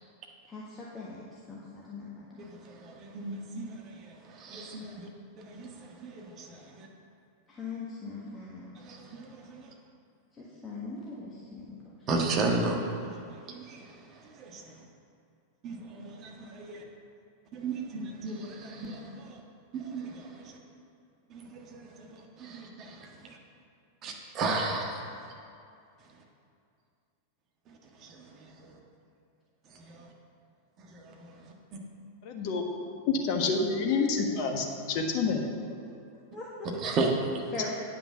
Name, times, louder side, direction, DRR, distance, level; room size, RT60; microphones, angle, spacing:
voice 1, 0.5-2.5 7.5-8.7 10.3-12.1 35.8-35.9 36.3-36.7 37.5-37.7, left 3 dB, 20° left, -6 dB, 1.5 m, -41 dB
voice 2, 2.4-5.1 5.4-6.9 8.8-9.7 12.1-14.7 15.6-16.8 17.5-19.4 19.7-20.6 21.3-23.4 24.0-25.0 28.0-28.7 29.7-30.1 30.9-31.4 36.8-37.4, right 3 dB, 35° right, 0 dB, 1.5 m, -35 dB
voice 3, 32.2-32.6 33.1-35.4, left 4 dB, 45° left, 3 dB, 1.3 m, -28 dB
9.9 x 5.9 x 6.6 m, 2.4 s
figure-of-eight pair, 90°, 0 cm